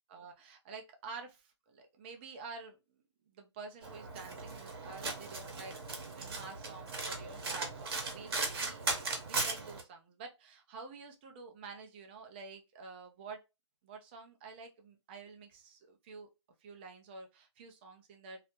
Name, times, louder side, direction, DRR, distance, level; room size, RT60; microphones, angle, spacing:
voice 1, 0.1-2.8 3.3-8.8 9.3-13.4 13.8-16.3 16.6-18.4, right 4 dB, 20° right, 0.4 m, -49 dB
Domestic sounds home sounds, 3.8-9.8, right 3 dB, 55° right, 0.9 m, -38 dB
2.3 x 2.0 x 2.8 m
hypercardioid pair, 145°, 15 cm